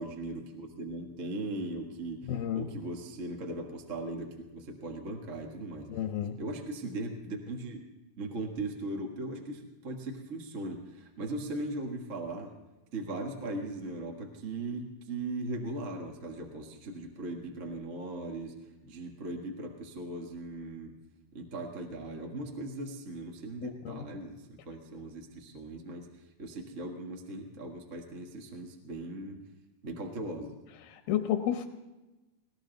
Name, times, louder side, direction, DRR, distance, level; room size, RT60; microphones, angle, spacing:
voice 1, 0.0-2.2 2.5-5.9 6.4-7.8 8.2-12.5 12.9-18.6 18.8-20.9 21.3-26.1 26.4-29.4 29.8-30.5, right 2 dB, 45° right, 1 dB, 1.0 m, -38 dB
voice 2, 2.2-2.7 5.9-6.4 23.6-24.0 30.8-31.7, left 10 dB, 85° left, 7 dB, 2.7 m, -32 dB
20.0 x 18.0 x 4.0 m, 1.1 s
omnidirectional pair, 4.2 m